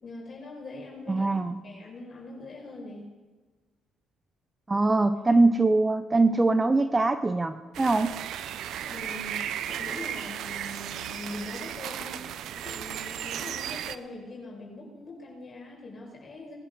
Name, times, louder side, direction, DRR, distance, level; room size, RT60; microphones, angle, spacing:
voice 1, 0.0-1.3 1.6-3.1 8.8-12.2 12.5-16.5, left 2 dB, 45° left, -3 dB, 5.8 m, -42 dB
voice 2, 1.1-1.6 4.7-8.2, right 3 dB, 25° right, 11 dB, 0.8 m, -23 dB
sound 1, 7.7-14.0, right 10 dB, 70° right, 0.6 m, -35 dB
20.5 x 11.0 x 4.0 m, 1.3 s
supercardioid pair, 60°, 0 cm